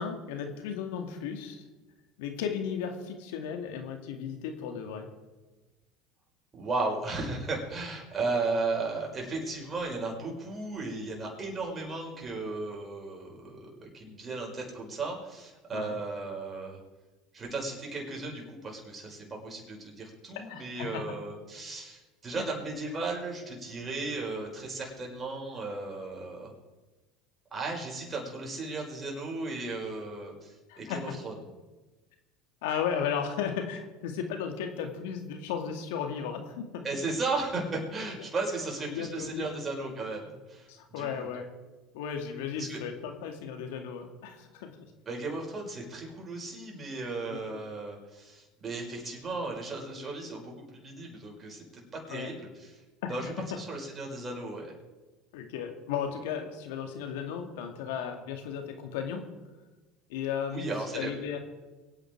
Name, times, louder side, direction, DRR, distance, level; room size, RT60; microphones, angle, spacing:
voice 1, 0.0-1.6 2.2-5.1 15.7-16.0 20.5-21.0 22.3-22.5 30.7-31.1 32.6-36.8 38.9-39.5 40.7-41.5 41.9-44.7 47.3-47.4 52.1-52.3 53.2-53.6 55.3-59.2 60.1-61.4, left 7 dB, 75° left, 5 dB, 2.2 m, -35 dB
voice 2, 6.5-16.8 17.3-26.5 27.5-31.3 36.8-41.3 42.5-42.8 45.1-51.6 52.1-52.8 53.1-54.7 60.5-61.1, right 3 dB, 30° right, -1 dB, 5.7 m, -35 dB
23.5 x 9.1 x 4.7 m, 1.2 s
hypercardioid pair, 90°, 0 cm